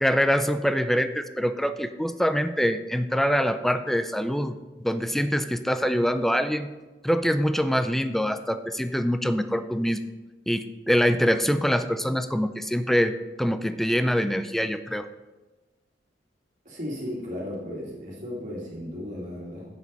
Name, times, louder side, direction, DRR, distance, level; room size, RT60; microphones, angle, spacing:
voice 1, 0.0-6.7 7.0-10.0 10.5-15.1, equal, ahead, 10 dB, 0.4 m, -24 dB
voice 2, 16.6-19.7, left 1 dB, 45° right, -4 dB, 2.2 m, -35 dB
8.4 x 7.6 x 5.3 m, 1.2 s
head